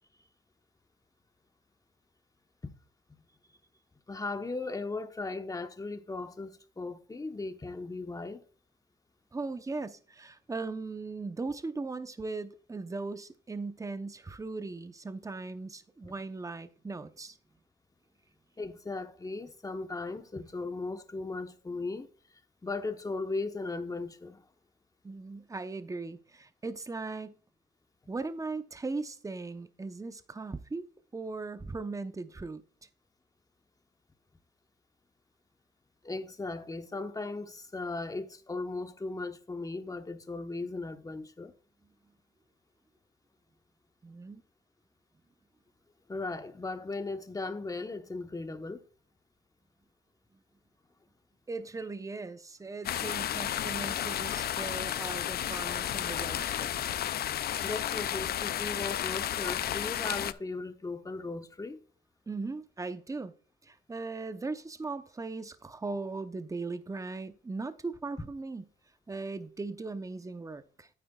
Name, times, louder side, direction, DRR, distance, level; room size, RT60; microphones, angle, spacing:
voice 1, 4.1-8.4 16.0-16.1 18.6-22.1 22.6-24.4 36.0-41.5 46.1-48.8 57.6-61.8, left 3 dB, 15° left, 1.0 m, -37 dB
voice 2, 9.3-17.4 25.0-27.3 28.1-30.9 31.1-32.6 44.0-44.4 51.5-57.1 62.3-63.3 63.6-68.6 69.1-70.9, right 3 dB, 15° right, 0.7 m, -38 dB
sound 1, 52.8-60.3, left 11 dB, 50° left, 0.4 m, -32 dB
9.4 x 8.5 x 2.3 m
cardioid pair, 90°, 20 cm